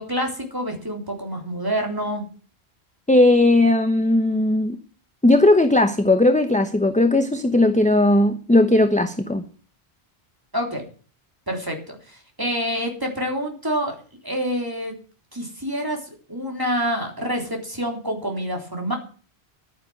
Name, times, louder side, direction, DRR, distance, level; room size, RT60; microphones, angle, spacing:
voice 1, 0.0-2.2 10.5-10.9 11.5-14.0 14.2-15.0 15.3-16.0 16.3-19.0, equal, 20° right, 3.5 m, -27 dB
voice 2, 3.1-4.8 5.2-9.4, left 2 dB, 5° left, 0.9 m, -17 dB
11.0 x 9.7 x 7.8 m
omnidirectional pair, 1.1 m